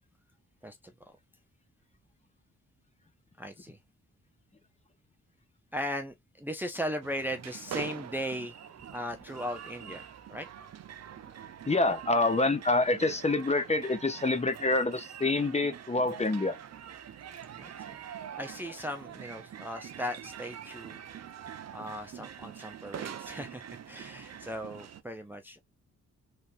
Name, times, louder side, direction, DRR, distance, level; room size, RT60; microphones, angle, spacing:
voice 1, 3.4-3.8 5.7-8.5 8.9-10.0 10.3-10.5 17.6-18.0 18.3-21.0 21.7-25.6, equal, 5° right, 0.5 m, -37 dB
sound 1, 7.0-25.0, right 9 dB, 60° right, 0.6 m, -45 dB
voice 2, 11.7-16.6, left 2 dB, 20° left, 0.8 m, -27 dB
3.3 x 2.9 x 2.5 m
cardioid pair, 70°, 29 cm